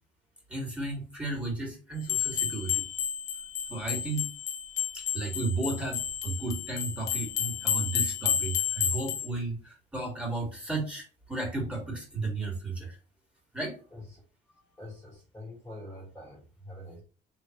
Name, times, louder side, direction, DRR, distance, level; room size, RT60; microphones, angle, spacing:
voice 1, 0.5-2.9 3.7-4.3 4.9-13.0 13.5-13.8, right 3 dB, 5° right, 1.9 m, -34 dB
sound 1, 2.0-9.3, left 9 dB, 75° left, 0.7 m, -31 dB
voice 2, 13.9-14.2 14.5-17.0, left 1 dB, 15° left, 1.4 m, -45 dB
3.7 x 3.2 x 2.9 m
cardioid pair, 110°, 17 cm